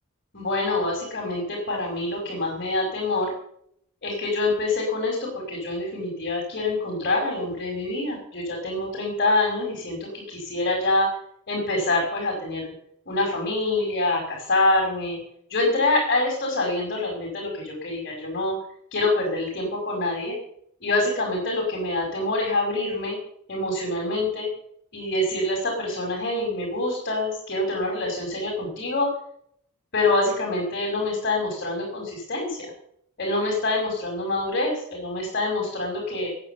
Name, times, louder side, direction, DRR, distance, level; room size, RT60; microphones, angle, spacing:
voice 1, 0.3-3.3 4.0-11.1 11.5-12.7 13.1-15.2 15.5-18.6 18.9-20.4 20.8-23.2 23.5-24.5 24.9-29.1 29.9-32.7 33.2-36.3, left 2 dB, 45° left, -1 dB, 5.3 m, -26 dB
19.0 x 9.9 x 6.8 m, 0.69 s
head